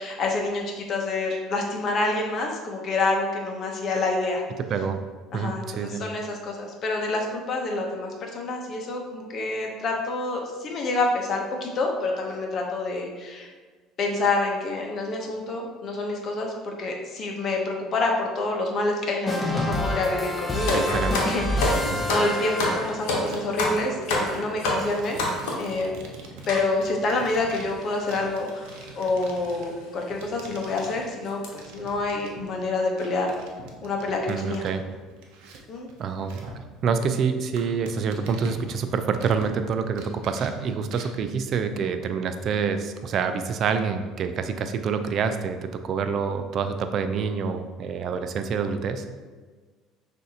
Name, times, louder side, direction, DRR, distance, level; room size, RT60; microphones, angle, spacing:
voice 1, 0.0-4.4 5.3-13.5 14.0-25.2 25.6-25.9 26.5-28.7 29.0-33.3 33.8-34.7 35.7-35.9, left 2 dB, 45° left, 1 dB, 0.8 m, -27 dB
voice 2, 5.3-6.0 20.7-21.2 21.9-22.1 34.3-34.8 36.0-36.3 36.8-49.2, right 6 dB, 50° right, 8 dB, 0.4 m, -27 dB
sound 1, 19.3-23.1, left 1 dB, 15° left, 0.7 m, -28 dB
sound 2, 20.7-25.7 26.5-26.7 27.4-27.5 27.6-27.8 28.8-29.0 29.5-29.6 30.1-30.2 30.6-30.9 31.2-31.5, left 2 dB, 90° left, 0.9 m, -27 dB
sound 3, 23.3-23.6 24.0-32.7 33.0-36.6 37.0-37.1 37.5-39.7 40.0-41.2, right 3 dB, 80° right, 0.7 m, -44 dB
6.2 x 2.7 x 2.8 m, 1.4 s
supercardioid pair, 110°, 0 cm